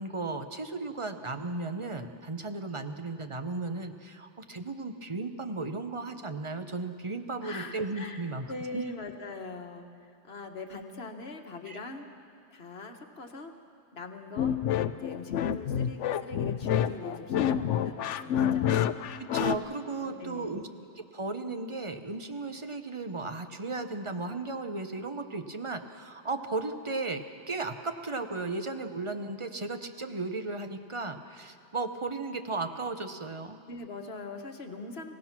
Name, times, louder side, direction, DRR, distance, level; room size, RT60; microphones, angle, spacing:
voice 1, 0.0-8.5 8.7-8.8 11.7-11.8 19.2-20.7 21.0-27.2 27.5-33.6, right 3 dB, 30° right, 7 dB, 0.9 m, -35 dB
voice 2, 7.4-12.1 12.5-13.5 13.9-14.6 14.9-18.9 20.0-20.6 33.7-35.1, left 3 dB, 60° left, 4 dB, 1.6 m, -42 dB
sound 1, 14.4-19.6, left 9 dB, 85° left, 1.0 m, -28 dB
26.0 x 16.5 x 6.0 m, 2.4 s
omnidirectional pair, 1.2 m